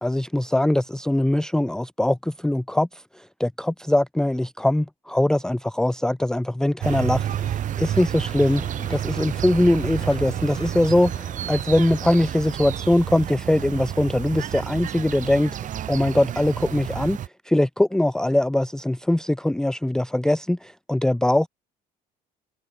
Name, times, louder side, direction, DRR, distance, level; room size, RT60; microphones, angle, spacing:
voice 1, 0.0-8.6 8.9-15.6 15.9-17.2 17.5-21.5, left 1 dB, 5° left, 0.5 m, -22 dB
gutierrez mpaulina baja fidelidad parque aire libre, 6.8-17.3, right 11 dB, 55° right, 2.9 m, -30 dB
sound 1, 7.1-12.3, left 6 dB, 35° left, 7.4 m, -46 dB
cardioid pair, 110°, 16 cm